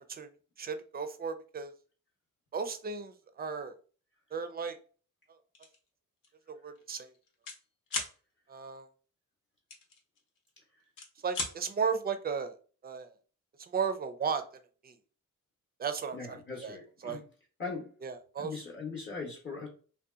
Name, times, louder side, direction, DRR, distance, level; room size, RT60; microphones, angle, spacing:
voice 1, 0.6-1.7 2.5-3.8 4.3-4.8 6.5-7.1 8.5-8.9 11.2-12.6 12.8-13.1 13.6-14.4 14.8-14.9 15.8-16.8 17.0-17.2 18.0-18.5, right 6 dB, 30° right, 9 dB, 0.4 m, -35 dB
sound 1, 5.6-5.8 6.2-6.4 6.7-7.6 7.9-8.1 9.7-10.5 10.8-11.5, left 3 dB, 80° left, 0.7 m, -37 dB
voice 2, 16.1-17.2 17.6-17.9 18.4-19.7, left 4 dB, 35° left, -2 dB, 0.7 m, -40 dB
2.7 x 2.1 x 2.3 m, 0.38 s
cardioid pair, 105°, 32 cm